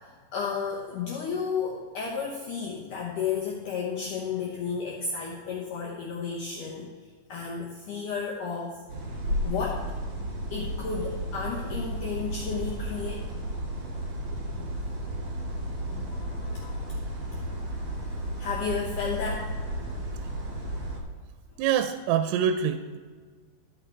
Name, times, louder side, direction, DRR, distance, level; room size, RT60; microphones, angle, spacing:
voice 1, 0.0-6.9 7.3-8.8 9.4-9.9 10.5-13.4 15.8-16.8 18.4-19.5, left 5 dB, 85° left, -4 dB, 1.8 m, -33 dB
sound 1, 8.9-21.0, equal, 40° right, 2.4 m, -33 dB
voice 2, 21.6-23.0, right 8 dB, 85° right, 9 dB, 2.8 m, -25 dB
13.5 x 6.6 x 4.5 m, 1.6 s
omnidirectional pair, 5.5 m